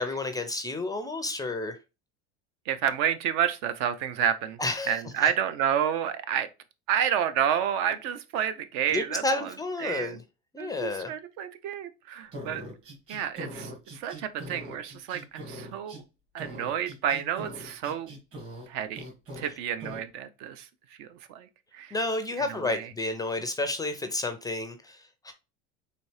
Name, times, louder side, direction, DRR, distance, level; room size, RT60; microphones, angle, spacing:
voice 1, 0.0-1.8 4.6-5.3 8.9-10.2 10.5-11.1 21.9-25.3, left 2 dB, 10° left, 0.4 m, -31 dB
voice 2, 2.7-4.6 4.9-6.5 6.9-9.5 9.8-10.2 10.6-12.6 13.1-16.0 16.3-18.1 18.7-19.1 19.4-20.7 21.0-21.5 21.7-22.0 22.5-22.9, right 9 dB, 65° right, 0.6 m, -30 dB
sound 1, 12.3-16.0 16.4-18.7 18.9-19.5 19.8-20.0, equal, 45° right, 2.0 m, -41 dB
4.2 x 2.8 x 3.2 m
supercardioid pair, 120°, 31 cm